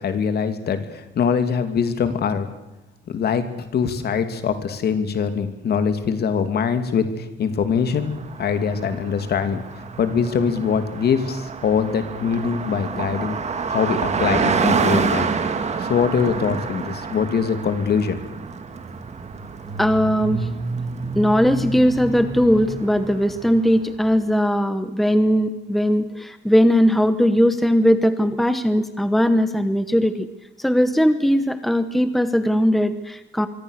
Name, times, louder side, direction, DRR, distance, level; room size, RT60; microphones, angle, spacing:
voice 1, 0.0-2.5 3.1-8.1 8.4-9.6 10.0-13.4 13.7-15.3 15.8-18.2, left 6 dB, 55° left, 9 dB, 2.7 m, -23 dB
Car passing by, 7.9-23.9, right 5 dB, 35° right, 2.2 m, -28 dB
voice 2, 19.8-20.5 21.2-30.3 30.6-33.5, equal, ahead, 10 dB, 1.1 m, -19 dB
25.5 x 24.5 x 6.6 m, 0.98 s
wide cardioid pair, 170°, 20 cm